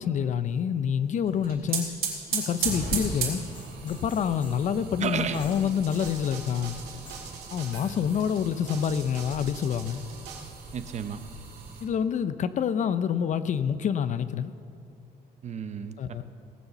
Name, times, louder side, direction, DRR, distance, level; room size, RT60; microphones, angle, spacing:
voice 1, 0.0-1.9 2.3-3.4 3.8-6.8 7.5-10.0 11.8-14.5 16.0-16.2, left 8 dB, 45° left, 13 dB, 0.6 m, -27 dB
sound 1, 1.2-11.8, right 5 dB, 65° right, 3.5 m, -36 dB
sound 2, 2.7-4.7 5.3-6.3 6.9-7.3 7.6-8.1 8.4-9.2 10.0-10.1, left 3 dB, 30° left, 1.8 m, -50 dB
voice 2, 5.0-5.7 10.7-11.2 15.4-15.9, right 7 dB, 40° right, 10 dB, 0.8 m, -32 dB
sound 3, 5.4-10.4, right 6 dB, 85° right, 2.3 m, -44 dB
18.5 x 7.0 x 6.8 m, 2.3 s
cardioid pair, 110°, 17 cm